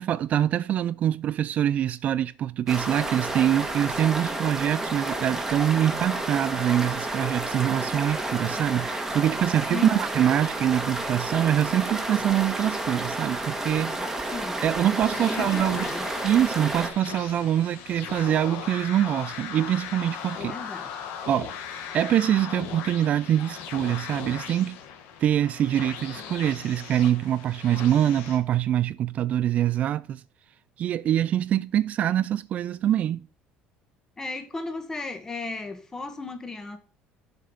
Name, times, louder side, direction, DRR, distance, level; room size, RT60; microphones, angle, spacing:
voice 1, 0.0-14.3 14.6-15.9 16.2-20.5 21.3-21.5 21.9-24.8 25.2-30.2 30.8-33.2, right 11 dB, 45° right, 0.3 m, -24 dB
sound 1, 2.7-16.9, right 2 dB, 10° right, 1.5 m, -31 dB
voice 2, 9.7-10.1 14.3-14.7 15.1-16.1 20.3-20.9 34.2-36.8, left 3 dB, 15° left, 1.6 m, -35 dB
sound 2, 14.6-28.4, left 7 dB, 80° left, 1.7 m, -38 dB
7.5 x 5.3 x 5.8 m
cardioid pair, 120°, 3 cm